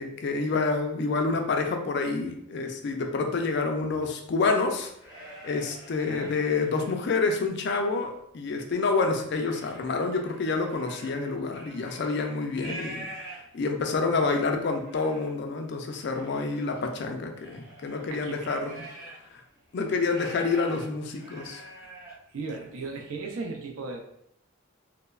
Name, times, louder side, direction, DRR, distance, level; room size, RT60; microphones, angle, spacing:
voice 1, 0.0-4.9 5.2-13.1 13.5-18.9 19.7-21.6, left 4 dB, 55° left, 4 dB, 0.3 m, -28 dB
sound 1, 4.8-7.3 7.8-8.5 8.9-13.8 14.3-14.4 14.6-15.3 15.9-19.3 19.6-22.2, right 1 dB, 15° right, 0.5 m, -46 dB
voice 2, 6.0-6.4 14.1-14.3 18.1-18.6 22.3-24.0, right 3 dB, 85° right, 2 dB, 0.4 m, -36 dB
3.0 x 2.0 x 2.2 m, 0.74 s
head